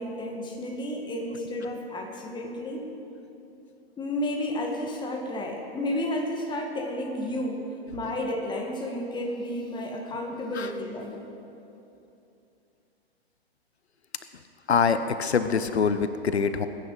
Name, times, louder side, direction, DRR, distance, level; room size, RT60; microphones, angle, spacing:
voice 1, 0.0-2.9 4.0-11.2, left 1 dB, 15° left, 2 dB, 1.8 m, -32 dB
voice 2, 14.7-16.7, left 6 dB, 90° left, 11 dB, 0.8 m, -24 dB
21.0 x 10.0 x 4.8 m, 2.8 s
hypercardioid pair, 120°, 32 cm